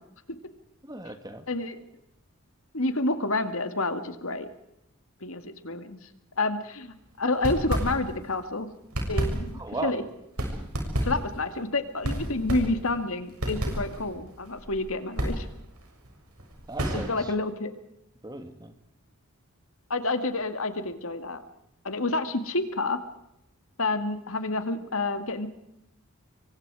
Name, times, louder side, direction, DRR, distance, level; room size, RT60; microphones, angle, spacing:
voice 1, 0.8-1.5 9.6-10.0 16.7-17.3 18.2-18.7, right 2 dB, 20° right, 8 dB, 1.9 m, -36 dB
voice 2, 1.5-1.8 2.7-4.5 5.2-6.0 6.4-8.7 9.1-10.0 11.0-15.5 16.9-17.7 19.9-21.4 21.8-23.0 23.8-25.5, left 2 dB, 65° left, 9 dB, 2.2 m, -29 dB
sound 1, 7.3-8.4 8.7-17.3, equal, 80° right, 6.6 m, -31 dB
26.5 x 23.5 x 4.9 m, 0.80 s
head